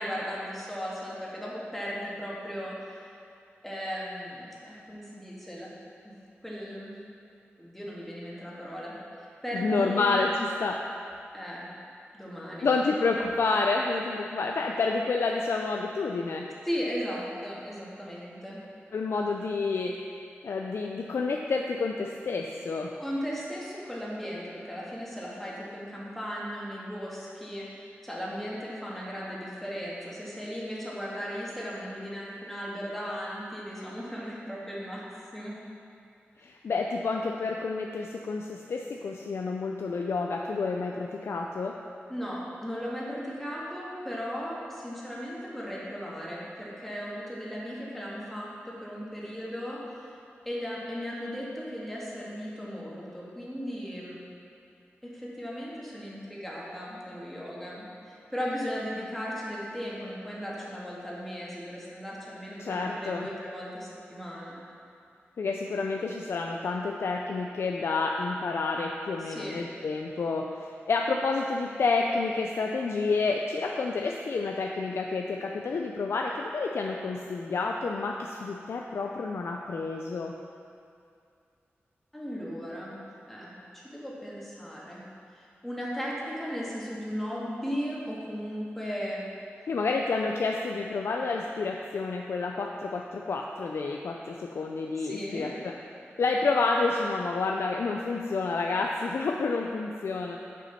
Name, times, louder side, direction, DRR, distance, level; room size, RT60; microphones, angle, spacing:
voice 1, 0.0-3.2 3.6-5.7 6.0-6.1 6.4-6.9 7.6-8.9 9.2-10.2 11.3-11.7 12.1-12.7 16.7-18.6 22.9-35.1 35.3-35.6 42.1-50.1 50.5-54.2 55.0-64.6 69.2-69.6 82.1-83.0 83.3-85.1 85.3-89.2 95.0-95.5, equal, 5° left, -6 dB, 1.8 m, -36 dB
voice 2, 9.5-10.8 12.6-16.5 18.9-20.0 20.4-22.9 36.4-41.8 62.6-63.3 65.4-80.3 89.7-95.7 96.2-100.4, left 3 dB, 70° left, 1 dB, 0.4 m, -29 dB
6.9 x 5.9 x 5.7 m, 2.4 s
wide cardioid pair, 95°, 4 cm